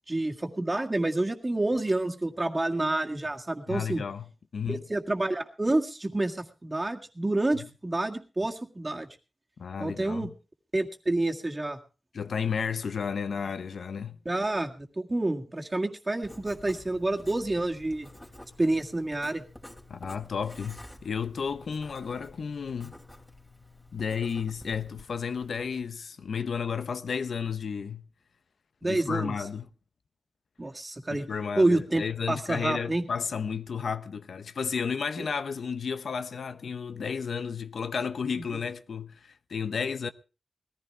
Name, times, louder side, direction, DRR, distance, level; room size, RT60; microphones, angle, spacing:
voice 1, 0.1-4.0 4.7-9.1 9.8-10.3 10.7-11.8 14.3-18.1 18.6-19.4 28.8-29.3 30.6-31.3 31.6-32.0 32.3-33.0 35.2-35.3, right 2 dB, 25° right, 1.9 m, -28 dB
voice 2, 3.7-4.2 4.5-4.8 9.6-10.3 12.1-14.2 19.9-23.0 23.9-28.0 28.8-29.7 31.1-40.1, left 6 dB, 85° left, 0.7 m, -32 dB
Writing, 16.2-25.8, left 1 dB, 15° left, 2.9 m, -50 dB
20.0 x 14.5 x 3.3 m
wide cardioid pair, 80°, 0 cm